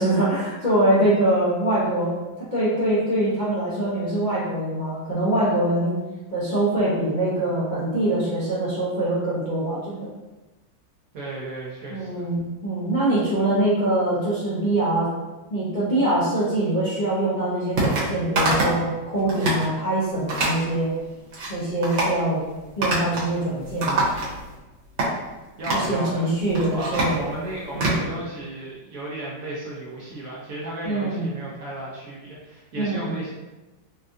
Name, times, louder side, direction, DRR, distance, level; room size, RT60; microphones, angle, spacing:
voice 1, 0.0-6.0 6.3-10.1 11.9-15.1 15.5-20.9 21.5-22.4 22.8-24.0 25.7-27.2 27.7-28.0 30.8-31.3 32.8-33.1, right 1 dB, 45° left, -11 dB, 0.6 m, -23 dB
voice 2, 11.1-12.3 25.6-26.3 26.7-33.3, right 1 dB, 65° right, -6 dB, 0.9 m, -34 dB
sound 1, 17.8-18.1 18.4-18.8 19.2-19.6 20.3-20.6 21.1-21.5 21.8-22.2 22.8-23.3 23.6-24.5 25.0-25.1 25.6-25.9 26.4-28.0, right 2 dB, 85° right, 1.6 m, -24 dB
4.4 x 2.3 x 2.5 m, 1.1 s
omnidirectional pair, 1.9 m